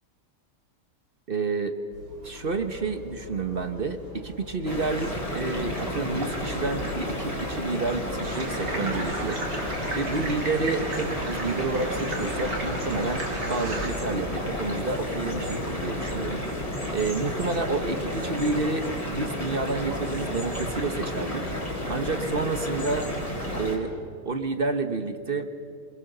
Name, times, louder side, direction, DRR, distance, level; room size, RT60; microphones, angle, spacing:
voice 1, 1.3-1.8 2.2-9.7 9.9-16.4 16.9-23.1 23.5-23.9 24.2-25.5, right 3 dB, 35° right, 9 dB, 0.9 m, -29 dB
sound 1, 1.9-16.3, left 4 dB, 70° right, 7.9 m, -45 dB
sound 2, 4.7-23.8, left 1 dB, 15° left, 3.7 m, -31 dB
sound 3, 8.2-13.9, right 2 dB, 50° right, 3.6 m, -35 dB
27.0 x 21.0 x 6.7 m, 2.5 s
omnidirectional pair, 2.3 m